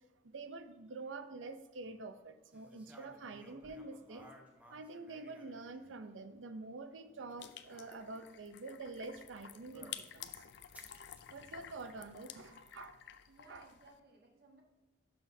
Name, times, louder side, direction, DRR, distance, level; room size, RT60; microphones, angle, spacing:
voice 1, 0.2-4.3 4.7-10.5 11.3-13.0 13.5-13.7, right 3 dB, 90° right, 10 dB, 0.6 m, -47 dB
sound 1, 2.5-6.1 7.1-7.9 9.7-10.2 10.7-12.2, right 1 dB, 10° right, 1.0 m, -60 dB
sound 2, 7.4-14.0, left 10 dB, 65° left, 0.4 m, -51 dB
voice 2, 13.3-14.6, right 2 dB, 55° right, 1 dB, 1.5 m, -61 dB
11.5 x 5.9 x 2.7 m, 1.1 s
head